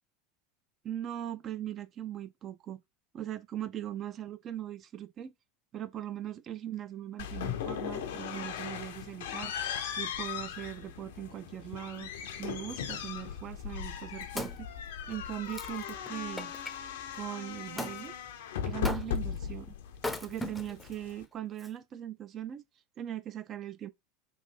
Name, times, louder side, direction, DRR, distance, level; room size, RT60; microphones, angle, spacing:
voice 1, 0.8-2.8 3.1-5.3 5.7-12.1 12.4-14.7 15.1-16.5 17.1-18.2 18.6-19.7 20.2-22.6 23.0-23.9, right 11 dB, 40° right, 0.4 m, -40 dB
sound 1, 7.2-21.2, left 8 dB, 75° left, 0.5 m, -38 dB
Wood, 13.9-16.8 17.8-18.0 18.8-19.4 19.9-20.9 21.6-21.7, left 1 dB, 10° left, 0.5 m, -39 dB
3.1 x 2.6 x 4.3 m
hypercardioid pair, 85°, 0 cm